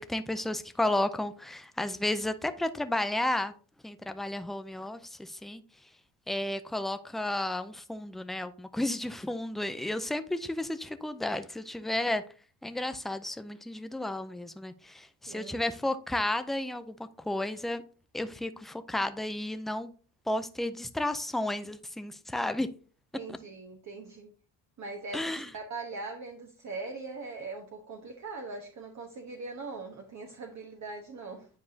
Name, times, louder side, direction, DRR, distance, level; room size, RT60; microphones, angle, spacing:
voice 1, 0.0-3.5 3.8-5.6 6.3-12.2 12.6-17.0 17.3-17.8 18.1-19.9 20.3-22.7 23.3-23.4 25.1-25.5, left 1 dB, ahead, 0.3 m, -32 dB
voice 2, 15.3-15.6 23.1-24.3 24.8-31.5, right 3 dB, 35° right, 1.2 m, -41 dB
9.5 x 4.8 x 2.7 m
cardioid pair, 105°, 49 cm